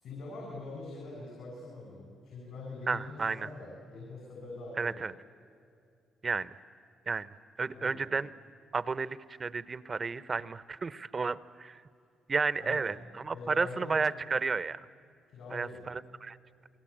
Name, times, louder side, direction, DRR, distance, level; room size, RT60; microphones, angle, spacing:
voice 1, 0.0-5.1 7.7-8.1 12.6-13.0 13.3-14.0 15.3-15.9, left 2 dB, 80° left, -2 dB, 7.2 m, -44 dB
voice 2, 2.9-3.5 4.8-5.1 6.2-6.6 7.1-7.3 7.6-8.3 8.7-11.8 12.3-14.8 15.5-16.4, right 4 dB, 35° right, 16 dB, 0.8 m, -32 dB
29.0 x 22.0 x 8.7 m, 2.3 s
cardioid pair, 90°, 0 cm